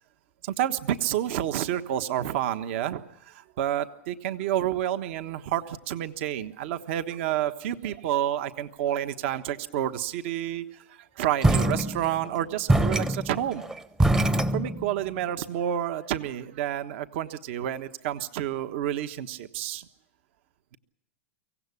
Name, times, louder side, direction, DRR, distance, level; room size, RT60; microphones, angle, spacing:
voice 1, 0.4-13.6 14.5-19.8, right 11 dB, 60° right, 11 dB, 1.3 m, -29 dB
sound 1, 11.4-12.3 12.7-15.1, right 1 dB, 10° right, 0.8 m, -24 dB
24.5 x 17.0 x 8.4 m, 0.86 s
hypercardioid pair, 130°, 7 cm